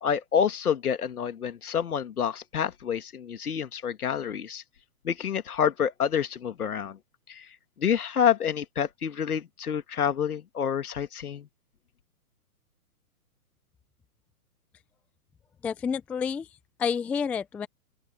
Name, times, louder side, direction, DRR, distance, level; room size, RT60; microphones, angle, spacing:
voice 1, 0.0-4.6 5.0-7.0 7.3-7.5 7.8-11.5, left 8 dB, 70° left, 2.5 m, -28 dB
voice 2, 15.6-16.5 16.8-17.7, left 6 dB, 5° left, 0.5 m, -29 dB
open air
hypercardioid pair, 130°, 46 cm